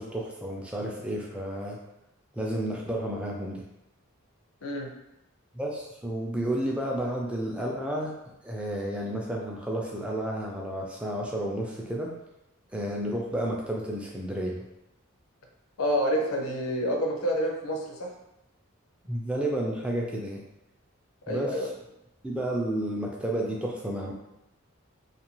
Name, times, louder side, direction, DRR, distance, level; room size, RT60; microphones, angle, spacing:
voice 1, 0.0-1.8 2.3-3.6 5.5-8.1 8.4-12.1 12.7-14.6 19.1-20.4 21.3-21.6 22.2-24.1, right 1 dB, 5° right, -2 dB, 0.3 m, -31 dB
voice 2, 15.8-18.1 21.3-21.7, equal, 85° left, 1 dB, 0.5 m, -28 dB
2.5 x 2.2 x 2.9 m, 0.89 s
head